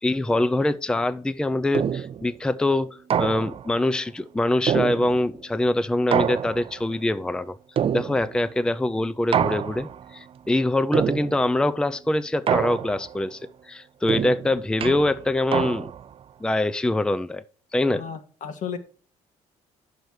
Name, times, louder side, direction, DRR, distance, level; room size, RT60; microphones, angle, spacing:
voice 1, 0.0-7.6 7.9-13.4 13.7-15.9 16.4-17.4 17.7-18.0, left 1 dB, 5° left, 0.5 m, -24 dB
sound 1, 1.7-2.3 3.1-3.8 4.7-5.4 6.1-6.9 7.8-8.5 9.3-10.1 10.9-11.6 12.5-13.2 14.1-16.1, right 9 dB, 45° right, 0.5 m, -26 dB
voice 2, 17.9-18.8, left 7 dB, 70° left, 1.4 m, -34 dB
9.1 x 6.5 x 4.7 m
cardioid pair, 85°, 13 cm